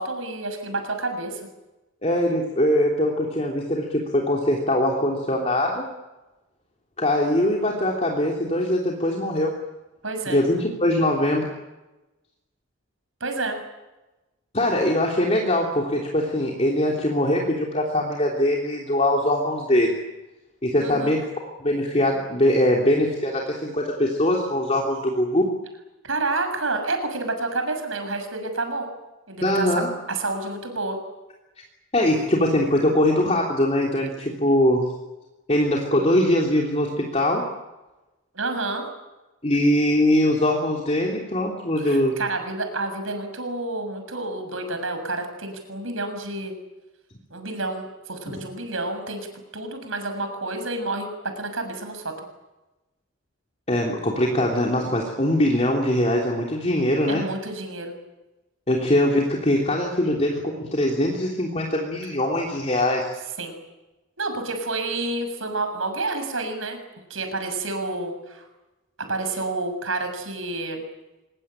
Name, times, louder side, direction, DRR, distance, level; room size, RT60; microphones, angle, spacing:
voice 1, 0.0-1.4 10.0-10.4 13.2-13.6 20.8-21.1 26.0-28.9 29.3-29.8 30.1-31.0 38.3-38.9 41.8-46.5 47.3-49.3 49.5-51.1 51.4-52.1 57.1-57.9 63.4-63.6 64.2-66.8 67.1-68.4 69.1-70.8, right 2 dB, 70° right, 6 dB, 6.9 m, -29 dB
voice 2, 2.0-5.8 7.0-9.5 10.3-11.5 14.5-20.0 20.6-21.3 21.6-25.5 29.4-29.9 31.9-34.9 35.5-37.5 39.4-42.2 53.7-57.2 58.7-63.1, left 1 dB, 30° left, -1 dB, 3.4 m, -22 dB
25.5 x 21.5 x 9.0 m, 1.1 s
head